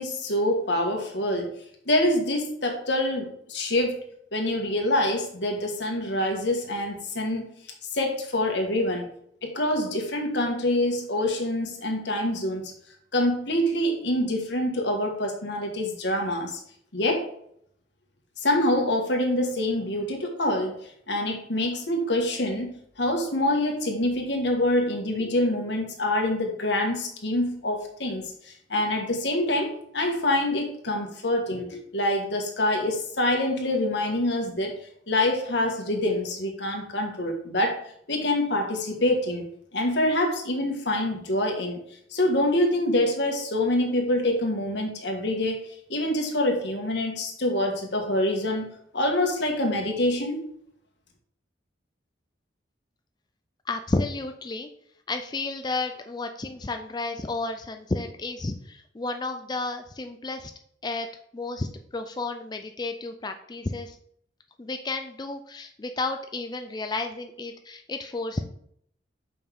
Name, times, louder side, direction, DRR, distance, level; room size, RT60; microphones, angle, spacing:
voice 1, 0.0-1.5 1.9-4.0 4.3-7.5 7.9-9.1 9.4-12.7 13.1-16.6 16.9-17.3 18.4-34.7 35.1-37.8 38.1-39.5 39.7-41.8 42.1-48.7 48.9-50.4, left 1 dB, 65° left, 2 dB, 1.6 m, -26 dB
voice 2, 53.7-54.7 55.1-60.5 60.8-61.1 61.3-64.0 64.6-68.4, left 3 dB, 20° left, 6 dB, 0.4 m, -32 dB
6.9 x 5.4 x 3.6 m, 0.67 s
head